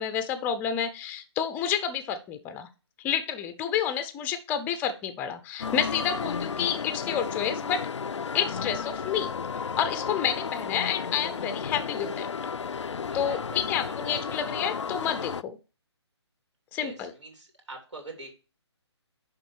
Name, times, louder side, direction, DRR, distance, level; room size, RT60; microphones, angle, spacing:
voice 1, 0.0-2.7 3.0-7.8 8.3-9.3 9.8-12.3 13.1-15.6 16.7-17.1, left 8 dB, 10° left, 9 dB, 0.5 m, -29 dB
sound 1, 5.6-15.4, left 6 dB, 80° left, 0.4 m, -33 dB
voice 2, 13.1-14.4 16.8-18.3, right 2 dB, 75° right, 2 dB, 3.4 m, -44 dB
10.5 x 3.6 x 4.6 m, 0.33 s
figure-of-eight pair, 145°, 15 cm